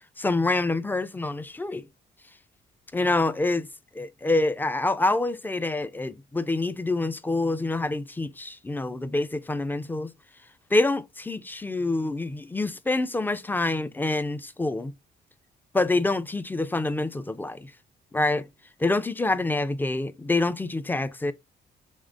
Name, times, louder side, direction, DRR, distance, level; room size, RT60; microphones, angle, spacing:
voice 1, 0.2-1.9 2.9-3.7 3.9-10.1 10.7-14.9 15.7-17.7 18.1-18.4 18.8-21.3, left 2 dB, 10° left, 0.4 m, -26 dB
3.6 x 3.2 x 2.4 m
cardioid pair, 90°, 20 cm